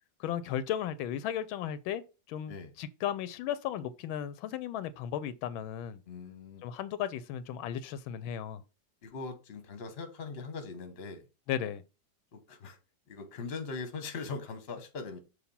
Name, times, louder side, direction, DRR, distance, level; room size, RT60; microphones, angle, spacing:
voice 1, 0.2-2.0 2.3-6.0 6.6-8.6 11.5-11.8, left 10 dB, 85° left, 1.4 m, -35 dB
voice 2, 6.1-6.6 9.0-11.3 12.3-12.8 13.1-15.2, left 4 dB, 40° left, 1.1 m, -41 dB
6.6 x 2.7 x 5.5 m
omnidirectional pair, 2.2 m